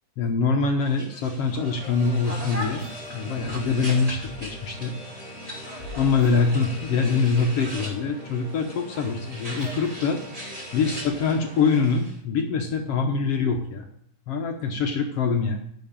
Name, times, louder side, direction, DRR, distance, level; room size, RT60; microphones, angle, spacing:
voice 1, 0.2-4.9 6.0-10.2 10.7-13.9 14.3-15.6, left 4 dB, 65° left, 3 dB, 1.6 m, -24 dB
sound 1, 0.8-12.2, equal, 15° right, 1.7 m, -39 dB
sound 2, 1.5-11.9, equal, ahead, 3.8 m, -42 dB
9.4 x 6.4 x 8.7 m, 0.69 s
omnidirectional pair, 3.6 m